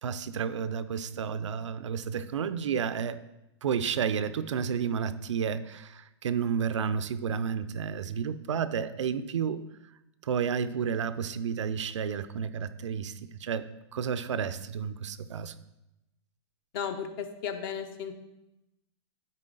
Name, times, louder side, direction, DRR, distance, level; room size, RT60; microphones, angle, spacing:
voice 1, 0.0-3.2 3.6-9.6 10.2-15.5, right 7 dB, 90° right, 12 dB, 0.5 m, -31 dB
voice 2, 16.7-18.1, left 7 dB, 45° left, 8 dB, 0.8 m, -34 dB
9.7 x 4.1 x 3.8 m, 0.92 s
hypercardioid pair, 135°, 15 cm